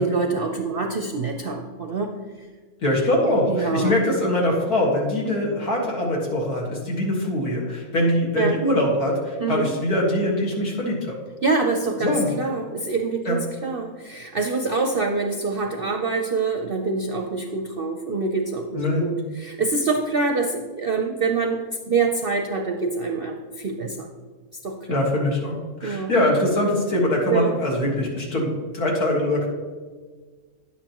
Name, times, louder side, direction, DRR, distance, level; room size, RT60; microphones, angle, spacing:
voice 1, 0.0-2.1 3.5-4.0 8.4-8.5 9.4-9.7 11.4-24.1 24.6-24.8 25.8-26.1 27.3-27.6, right 4 dB, 55° right, 3 dB, 0.6 m, -25 dB
voice 2, 2.8-11.1 12.0-12.4 13.2-13.4 18.7-19.0 24.9-29.5, left 1 dB, 75° left, -2 dB, 2.3 m, -23 dB
10.5 x 8.6 x 3.0 m, 1.4 s
omnidirectional pair, 1.6 m